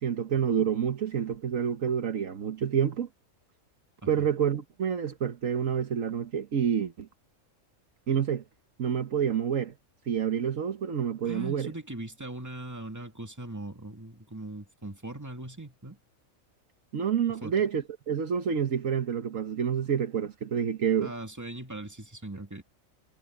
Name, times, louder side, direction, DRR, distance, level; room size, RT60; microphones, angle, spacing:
voice 1, 0.0-3.1 4.1-7.1 8.1-8.4 8.8-9.7 10.1-11.7 16.9-21.1, right 8 dB, 70° right, 1.5 m, -28 dB
voice 2, 11.2-16.0 17.4-17.5 21.0-22.6, right 2 dB, 10° right, 2.3 m, -40 dB
omnidirectional pair, 1.4 m